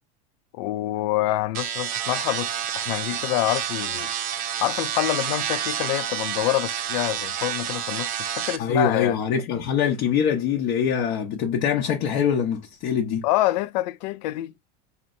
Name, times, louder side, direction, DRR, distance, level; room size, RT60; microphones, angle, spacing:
voice 1, 0.5-4.1 4.6-9.1 13.2-14.5, left 16 dB, 75° left, 0.4 m, -26 dB
sound 1, 1.5-8.6, right 9 dB, 40° right, 0.6 m, -29 dB
voice 2, 8.6-13.2, left 7 dB, 50° left, 0.8 m, -24 dB
4.3 x 2.9 x 2.5 m
supercardioid pair, 140°, 21 cm